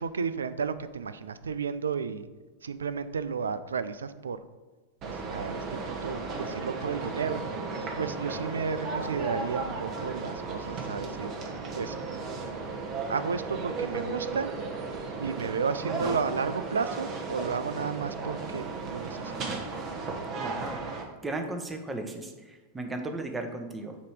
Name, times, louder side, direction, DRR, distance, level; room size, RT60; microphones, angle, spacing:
voice 1, 0.0-2.3 2.6-4.4 5.0-5.6 5.9-7.4 8.0-11.3 11.7-12.0 13.1-14.5 15.2-19.3, right 5 dB, 85° right, 14 dB, 0.4 m, -32 dB
sound 1, 5.0-21.0, right 3 dB, 40° right, 1.3 m, -35 dB
voice 2, 15.8-16.2 20.3-20.8 21.2-24.0, right 2 dB, 15° right, 5 dB, 1.0 m, -36 dB
8.2 x 3.0 x 5.0 m, 1.3 s
hypercardioid pair, 95°, 0 cm